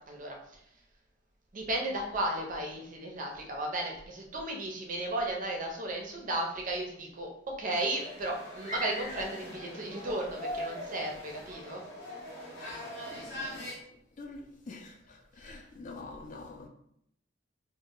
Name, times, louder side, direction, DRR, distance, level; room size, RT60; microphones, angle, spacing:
voice 1, 0.1-0.6 1.5-11.8, right 1 dB, 45° right, 1 dB, 0.5 m, -34 dB
sound 1, 7.7-13.7, equal, 80° left, 0.9 m, -41 dB
voice 2, 13.1-13.7 14.2-16.7, left 3 dB, 45° left, 3 dB, 0.4 m, -46 dB
2.1 x 2.0 x 3.6 m, 0.71 s
head